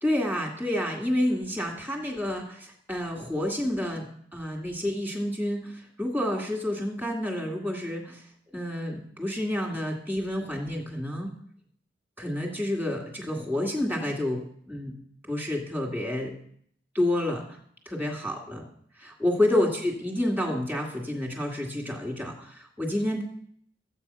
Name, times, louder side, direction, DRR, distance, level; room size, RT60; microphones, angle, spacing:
voice 1, 0.0-8.2 8.5-11.3 12.2-14.9 15.3-16.4 16.9-17.6 17.9-18.6 19.0-23.2, left 1 dB, 10° right, 0 dB, 2.2 m, -29 dB
14.5 x 8.4 x 5.6 m, 0.63 s
head